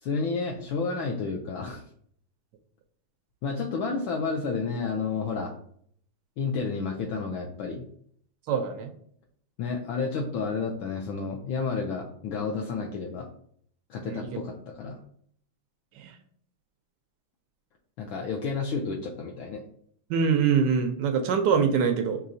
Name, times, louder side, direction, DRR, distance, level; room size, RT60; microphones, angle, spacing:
voice 1, 0.0-1.8 3.4-5.5 6.4-7.9 9.6-13.3 13.9-15.0 18.0-19.6, left 4 dB, 75° left, 1 dB, 1.2 m, -31 dB
voice 2, 8.5-8.9 14.0-14.4 16.0-16.1 20.1-22.2, right 6 dB, 80° right, 5 dB, 0.9 m, -24 dB
5.4 x 3.0 x 2.6 m, 0.63 s
omnidirectional pair, 2.4 m